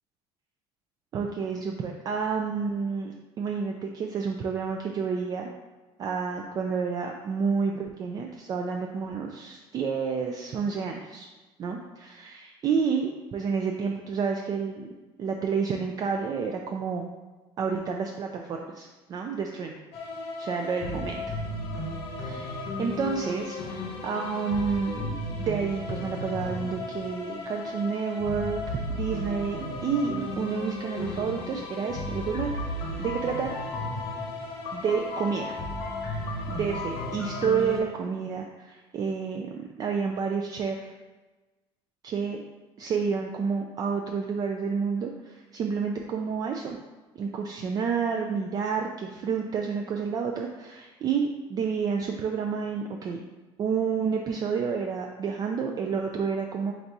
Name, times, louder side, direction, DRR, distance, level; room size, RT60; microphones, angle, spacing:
voice 1, 1.1-5.5 6.0-11.3 11.6-14.9 15.2-17.0 17.6-19.8 20.4-21.2 22.2-32.5 33.0-33.6 34.7-35.5 36.0-40.9 42.0-42.4 42.8-46.8 47.2-53.2 53.6-56.7, right 5 dB, 35° right, 2 dB, 0.3 m, -30 dB
sound 1, 19.9-37.8, left 2 dB, 60° left, 0.8 m, -34 dB
4.0 x 2.6 x 4.5 m, 1.2 s
cardioid pair, 140°, 11 cm